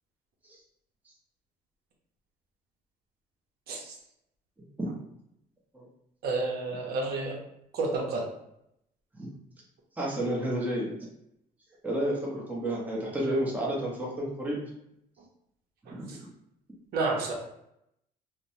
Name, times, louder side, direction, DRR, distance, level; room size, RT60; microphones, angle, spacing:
voice 1, 6.2-7.4 7.7-8.3 15.9-16.2 16.9-17.3, right 3 dB, 70° right, 0 dB, 0.7 m, -30 dB
voice 2, 10.0-11.0 11.8-14.6 15.9-16.1, right 1 dB, 10° right, -4 dB, 0.8 m, -31 dB
2.9 x 2.1 x 2.7 m, 0.77 s
cardioid pair, 110°, 17 cm